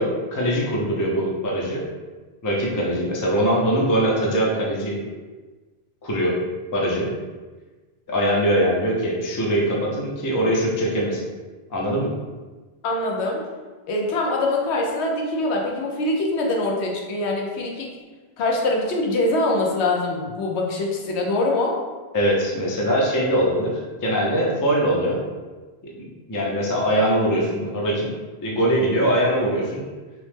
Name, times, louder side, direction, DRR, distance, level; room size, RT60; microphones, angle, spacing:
voice 1, 0.0-1.8 2.4-5.0 6.0-6.4 6.7-7.1 8.1-11.2 11.7-12.1 22.1-25.2 26.0-28.1 28.4-29.8, equal, 35° left, -3 dB, 0.3 m, -22 dB
voice 2, 12.8-13.5 13.9-18.0 18.4-21.8, left 2 dB, 90° left, 0 dB, 0.9 m, -23 dB
2.9 x 2.0 x 3.2 m, 1.3 s
omnidirectional pair, 1.1 m